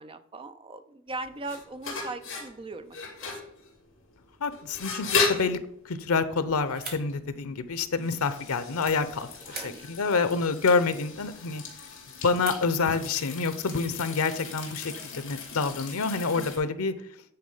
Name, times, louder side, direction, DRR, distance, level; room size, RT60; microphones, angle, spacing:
voice 1, 0.0-3.5 9.4-10.1, right 2 dB, 25° right, 10 dB, 0.5 m, -40 dB
sound 1, 1.1-16.6, left 4 dB, 60° left, 2.5 m, -36 dB
voice 2, 4.4-5.6 5.8-11.6 12.2-16.9, left 4 dB, 90° left, 13 dB, 0.7 m, -27 dB
sound 2, 6.4-13.1, right 3 dB, 45° right, 2.2 m, -47 dB
9.4 x 4.2 x 5.5 m, 0.71 s
head